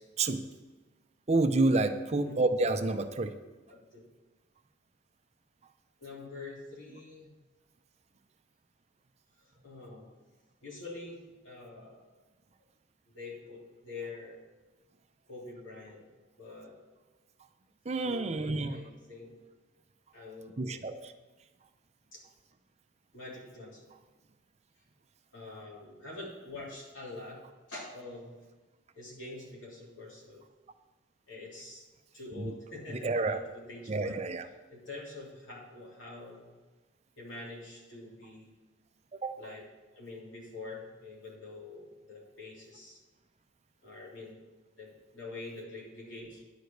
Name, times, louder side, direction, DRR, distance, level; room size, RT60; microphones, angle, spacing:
voice 1, 1.3-3.3 17.9-18.8 20.6-21.0 32.4-32.5 33.0-33.4 33.9-34.4 39.1-39.3, right 2 dB, 35° right, 8 dB, 0.5 m, -28 dB
voice 2, 3.7-4.1 6.0-7.3 9.4-10.1 10.6-12.1 13.1-14.4 15.3-16.1 16.4-16.8 18.0-19.3 20.1-20.8 22.1-22.2 23.1-23.9 25.3-27.4 27.7-28.4 28.9-30.4 31.3-31.9 32.1-34.2 34.7-36.5 37.2-38.5 39.3-39.7 39.9-43.0 43.8-44.4 44.8-46.4, left 2 dB, 75° left, -4 dB, 3.3 m, -45 dB
10.5 x 4.9 x 7.9 m, 1.2 s
head